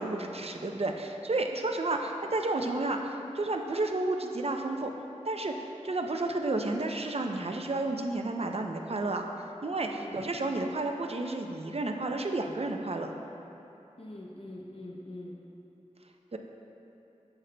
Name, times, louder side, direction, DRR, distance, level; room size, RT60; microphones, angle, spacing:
voice 1, 0.0-4.9 5.2-9.3 9.6-13.1 16.3-16.4, right 2 dB, 55° right, 4 dB, 0.5 m, -31 dB
voice 2, 9.8-10.2 10.4-10.5 14.0-15.4, left 1 dB, 50° left, -3 dB, 0.7 m, -44 dB
8.7 x 7.9 x 2.2 m, 3.0 s
wide cardioid pair, 55°, 12 cm